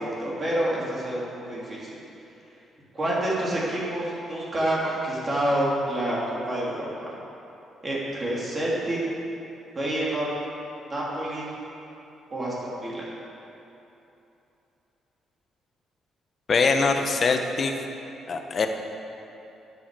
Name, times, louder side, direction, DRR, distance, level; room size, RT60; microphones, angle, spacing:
voice 1, 0.0-2.0 2.9-7.2 7.8-9.0 9.7-10.2 10.9-11.5 12.3-13.0, right 1 dB, 30° right, -6 dB, 2.9 m, -28 dB
voice 2, 16.5-17.7 18.3-18.7, left 4 dB, 45° left, 5 dB, 1.1 m, -23 dB
10.0 x 7.1 x 8.2 m, 2.9 s
cardioid pair, 90°, 0 cm